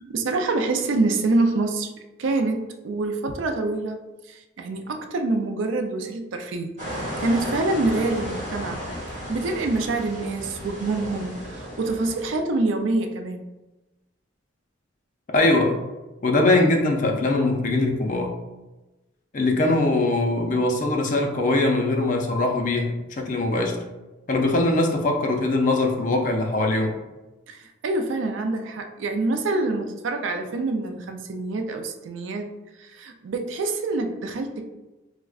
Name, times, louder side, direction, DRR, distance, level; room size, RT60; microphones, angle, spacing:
voice 1, 0.0-1.9 2.2-6.7 7.2-8.8 9.3-13.4 27.5-34.6, right 2 dB, 75° right, 5 dB, 0.4 m, -26 dB
sound 1, 6.8-12.4, equal, 35° right, 1.1 m, -34 dB
voice 2, 15.3-15.8 16.2-18.4 19.3-23.8 24.3-27.0, left 2 dB, 40° left, 2 dB, 0.4 m, -21 dB
4.6 x 2.1 x 2.3 m, 1.1 s
head